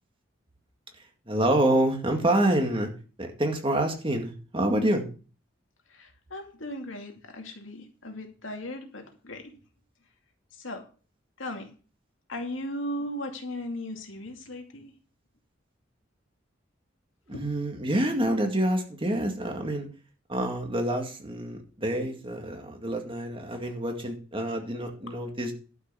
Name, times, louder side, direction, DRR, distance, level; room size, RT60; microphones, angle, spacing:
voice 1, 1.3-2.9 3.2-5.1 17.3-19.9 20.3-25.5, right 1 dB, 25° right, 4 dB, 2.1 m, -27 dB
voice 2, 5.9-9.6 10.5-10.8 11.4-11.7 12.3-14.9 17.3-17.4, left 1 dB, 85° left, 3 dB, 2.4 m, -37 dB
11.5 x 5.8 x 6.9 m, 0.37 s
head